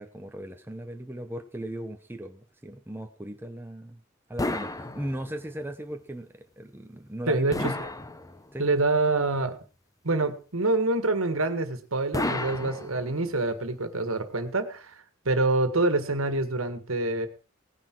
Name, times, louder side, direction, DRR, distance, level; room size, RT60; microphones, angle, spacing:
voice 1, 0.0-4.0 4.3-7.6 8.5-8.7, right 1 dB, 10° right, 5 dB, 1.0 m, -38 dB
sound 1, 4.4-5.6 7.5-8.7 12.1-13.4, left 2 dB, 15° left, 0.9 m, -32 dB
voice 2, 7.3-7.9 8.6-9.5 10.0-17.3, right 2 dB, 85° right, 9 dB, 1.8 m, -26 dB
18.0 x 9.9 x 4.6 m, 0.36 s
head